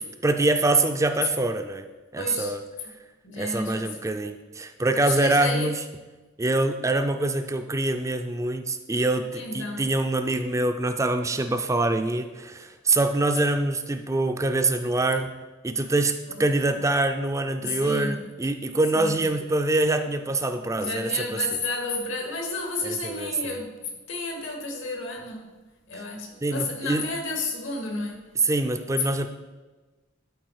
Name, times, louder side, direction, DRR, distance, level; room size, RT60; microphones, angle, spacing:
voice 1, 0.0-1.8 2.1-2.6 3.4-5.8 6.4-15.3 15.6-21.4 22.8-23.5 26.4-27.0 28.4-29.3, right 2 dB, 15° right, 7 dB, 0.4 m, -25 dB
voice 2, 2.2-2.6 3.2-4.0 5.0-5.7 9.3-9.9 16.3-16.8 17.6-18.3 18.9-19.3 20.7-25.6 25.9-28.3, left 3 dB, 75° left, 2 dB, 2.0 m, -32 dB
11.5 x 4.7 x 4.8 m, 1.2 s
head